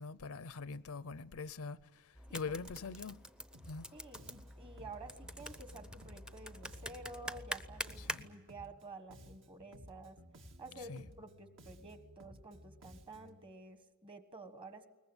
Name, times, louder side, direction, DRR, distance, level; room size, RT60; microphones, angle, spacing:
voice 1, 0.0-3.2 3.6-4.0 7.9-8.3 10.8-11.1, left 4 dB, 70° left, 0.7 m, -44 dB
sound 1, 2.1-8.2, equal, 5° right, 0.7 m, -46 dB
Bass guitar, 3.5-3.9 4.1-8.8 9.1-13.4, equal, 60° right, 2.1 m, -57 dB
voice 2, 3.9-10.2 10.6-14.9, right 2 dB, 25° right, 1.5 m, -51 dB
22.0 x 20.0 x 9.9 m
head